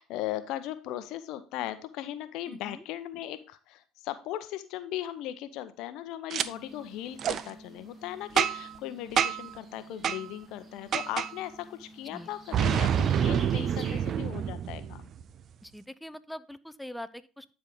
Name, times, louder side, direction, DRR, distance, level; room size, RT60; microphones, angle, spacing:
voice 1, 0.0-15.1, left 13 dB, 65° left, 12 dB, 0.7 m, -38 dB
voice 2, 2.5-2.8 12.1-12.3 13.9-14.0 15.6-17.5, left 1 dB, 5° left, 15 dB, 0.6 m, -43 dB
sound 1, 6.3-14.2, right 1 dB, 30° right, 2.3 m, -50 dB
Boom, 6.3-6.5 7.2-7.4 8.4-8.8 9.2-9.5 10.0-10.2 10.9-11.3 12.5-15.2, right 8 dB, 50° right, 0.5 m, -27 dB
10.0 x 4.7 x 3.7 m, 0.35 s
hypercardioid pair, 70°, 0 cm